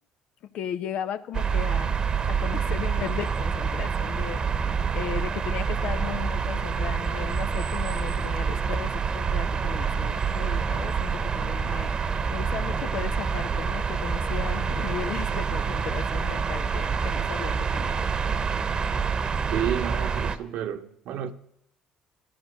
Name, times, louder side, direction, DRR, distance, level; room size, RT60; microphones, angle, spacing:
voice 1, 0.4-4.4 4.9-18.0, left 9 dB, 70° left, 0.9 m, -36 dB
sound 1, 1.3-20.4, right 6 dB, 40° right, 1.1 m, -27 dB
voice 2, 19.5-21.3, right 10 dB, 70° right, 1.1 m, -31 dB
14.0 x 12.0 x 6.4 m
supercardioid pair, 80°, 2 cm